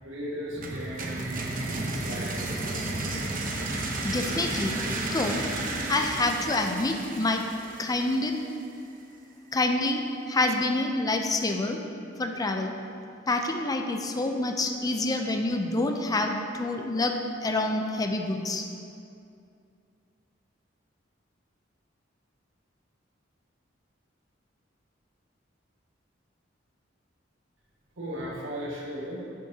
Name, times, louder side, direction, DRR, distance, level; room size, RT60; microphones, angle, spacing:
voice 1, 0.0-2.8 3.1-3.5 28.0-29.2, equal, 90° right, -4 dB, 1.6 m, -37 dB
sound 1, 0.6-8.4, right 2 dB, 45° right, 0.8 m, -32 dB
voice 2, 4.0-4.8 5.1-5.4 5.9-7.4 7.8-8.4 9.5-10.0 10.3-11.8 12.2-12.7 13.3-18.7, left 2 dB, 20° left, 4 dB, 0.4 m, -27 dB
11.5 x 6.4 x 2.8 m, 2.5 s
head